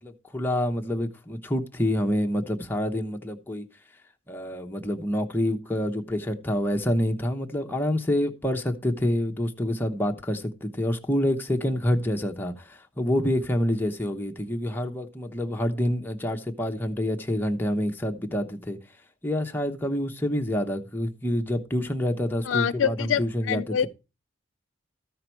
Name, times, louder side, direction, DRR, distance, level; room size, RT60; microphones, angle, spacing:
voice 1, 0.0-3.7 4.3-18.8 19.2-23.9, left 1 dB, 10° left, 0.9 m, -27 dB
voice 2, 22.5-23.2 23.5-23.9, left 8 dB, 80° left, 0.4 m, -25 dB
13.0 x 5.7 x 4.5 m
head